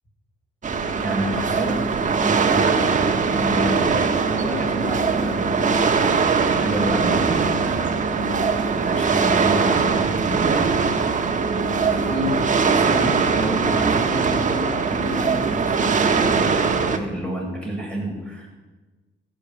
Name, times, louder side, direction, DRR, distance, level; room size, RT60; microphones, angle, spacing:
sound 1, 0.6-17.0, right 5 dB, 40° right, 1.4 m, -21 dB
voice 1, 1.0-1.8 2.2-2.9 3.2-6.2 6.6-7.9 8.7-11.2 11.9-18.5, equal, 5° left, -2 dB, 6.8 m, -29 dB
15.5 x 9.0 x 8.6 m, 1.2 s
cardioid pair, 90°, 20 cm